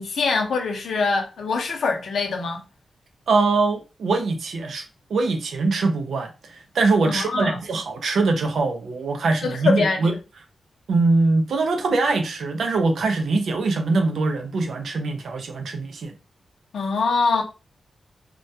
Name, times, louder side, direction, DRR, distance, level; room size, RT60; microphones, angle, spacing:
voice 1, 0.0-2.6 7.0-7.6 9.4-10.0 16.7-17.4, left 4 dB, 85° left, 0.5 m, -23 dB
voice 2, 3.3-4.8 5.1-10.1 10.9-16.1, right 3 dB, 80° right, 0.5 m, -22 dB
2.2 x 2.1 x 2.7 m
wide cardioid pair, 160°, 0 cm